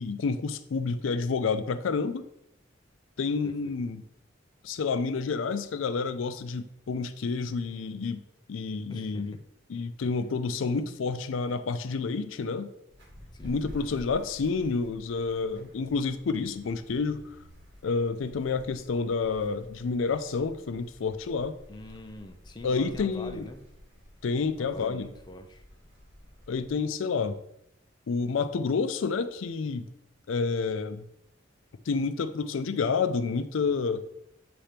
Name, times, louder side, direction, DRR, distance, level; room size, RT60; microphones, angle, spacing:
voice 1, 0.0-2.2 3.2-4.0 4.6-8.2 8.5-9.4 9.7-12.7 13.4-17.2 17.8-21.5 22.6-23.4 24.2-25.1 26.5-27.4 28.1-29.9 30.3-31.0 31.9-34.0, left 4 dB, 90° left, 11 dB, 0.4 m, -29 dB
voice 2, 3.4-3.8 8.9-9.4 10.0-10.1 13.3-13.6 21.7-23.6 24.6-25.6, left 1 dB, 20° left, 5 dB, 0.5 m, -44 dB
sound 1, 12.9-26.7, equal, 65° right, 2.7 m, -50 dB
7.6 x 2.9 x 5.0 m, 0.78 s
head